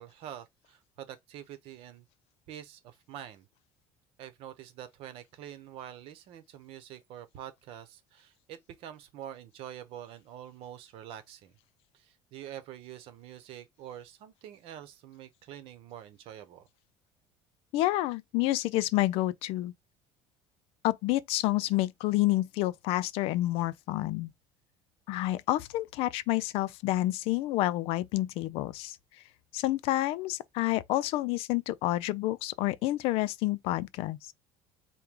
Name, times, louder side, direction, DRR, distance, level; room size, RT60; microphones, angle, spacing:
voice 1, 0.0-2.1 2.5-3.5 4.2-11.5 11.9-16.7, right 11 dB, 60° right, 1.0 m, -46 dB
voice 2, 17.7-19.7 20.8-24.3 25.1-29.0 29.5-34.3, left 16 dB, 65° left, 0.4 m, -29 dB
4.6 x 2.2 x 3.6 m
cardioid pair, 140°, 11 cm